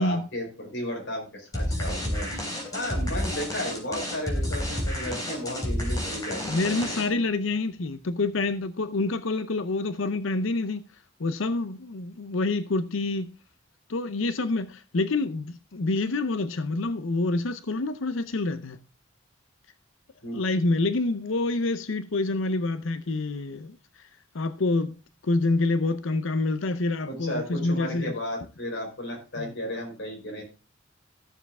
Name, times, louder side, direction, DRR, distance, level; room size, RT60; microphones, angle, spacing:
voice 1, 0.0-2.3 2.7-7.2 20.2-20.4 27.1-30.4, equal, 60° left, 4.6 m, -34 dB
sound 1, 1.5-7.3, left 1 dB, 20° left, 3.5 m, -30 dB
voice 2, 6.5-10.8 11.2-13.3 13.9-18.8 20.3-23.8 24.3-28.1 29.4-29.5, left 2 dB, 75° left, 0.7 m, -27 dB
14.0 x 7.0 x 3.6 m
head